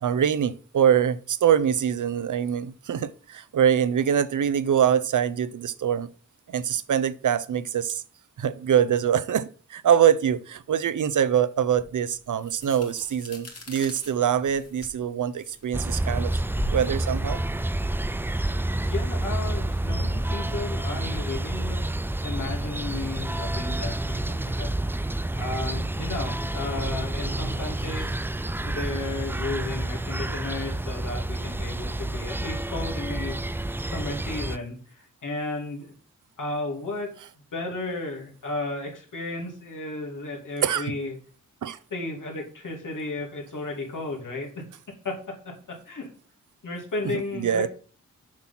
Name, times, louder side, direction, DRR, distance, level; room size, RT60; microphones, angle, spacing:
voice 1, 0.0-6.1 6.5-8.0 8.4-16.3 16.7-17.4 40.6-40.9 41.6-41.8 47.3-47.7, right 9 dB, 80° right, 0.6 m, -24 dB
sound 1, 11.8-18.5, equal, 50° left, 2.5 m, -40 dB
sound 2, 15.7-34.6, right 1 dB, 5° right, 0.3 m, -29 dB
voice 2, 18.8-28.1 28.6-35.9 36.4-37.1 37.5-41.2 41.9-44.7 45.0-46.1 46.6-47.7, left 2 dB, 80° left, 2.8 m, -34 dB
7.4 x 6.0 x 5.7 m
wide cardioid pair, 95°, 31 cm